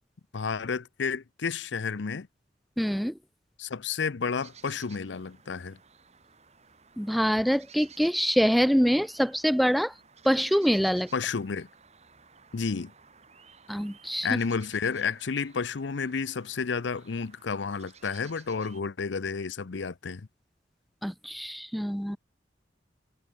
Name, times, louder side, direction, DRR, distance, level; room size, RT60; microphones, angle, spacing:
voice 1, 0.3-2.3 3.6-5.8 11.1-11.7 12.5-12.9 14.2-20.3, left 5 dB, 90° left, 0.6 m, -31 dB
voice 2, 2.8-3.1 7.0-9.9 10.2-11.1 13.7-14.3 21.0-22.2, equal, ahead, 0.3 m, -25 dB
sound 1, 4.4-18.8, right 6 dB, 40° right, 6.6 m, -56 dB
head